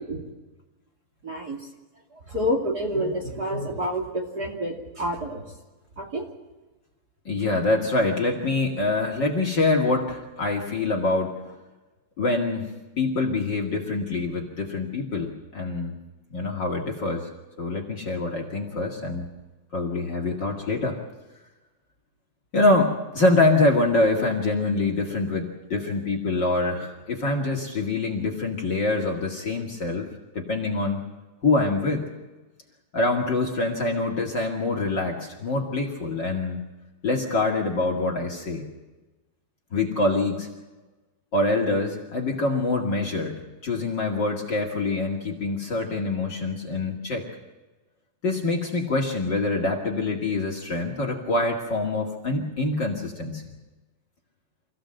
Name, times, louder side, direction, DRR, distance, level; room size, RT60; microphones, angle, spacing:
voice 1, 1.2-1.7 2.1-5.4 6.0-6.3, equal, 30° right, 0 dB, 2.7 m, -28 dB
voice 2, 7.3-11.5 12.2-12.7 13.0-16.0 16.3-17.3 17.6-19.3 19.7-21.0 22.5-30.1 30.3-31.0 31.4-32.1 32.9-36.6 37.0-38.7 39.7-40.5 41.3-47.3 48.2-53.4, left 2 dB, 40° left, 4 dB, 2.5 m, -25 dB
26.0 x 16.0 x 7.7 m, 1.2 s
omnidirectional pair, 3.7 m